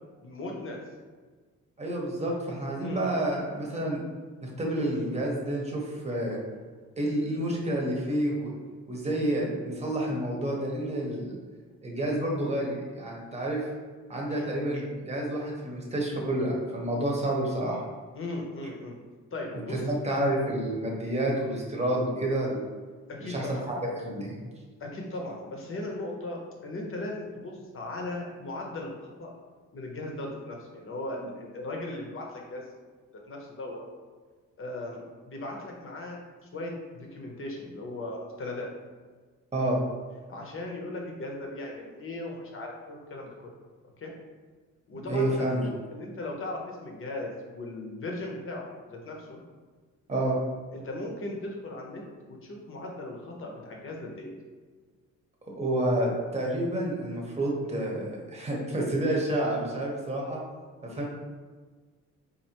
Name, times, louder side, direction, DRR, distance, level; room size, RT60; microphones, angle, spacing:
voice 1, 0.2-0.8 2.8-3.0 14.3-14.5 18.1-18.9 19.3-19.8 23.1-23.7 24.8-26.4 26.6-29.3 29.7-32.7 33.3-33.8 34.6-36.2 36.5-38.7 40.3-43.5 44.0-44.1 44.9-49.4 50.7-52.0 52.3-54.3 60.9-61.1, left 2 dB, 45° left, -1 dB, 0.9 m, -37 dB
voice 2, 1.8-4.0 4.4-6.4 7.0-8.5 8.9-11.4 11.8-13.7 14.1-17.8 19.5-22.7 23.2-24.4 39.5-39.8 45.1-45.6 50.1-50.4 55.5-60.4 60.8-61.1, right 1 dB, 20° right, -2 dB, 1.0 m, -29 dB
4.3 x 2.7 x 2.9 m, 1.4 s
cardioid pair, 90°, 30 cm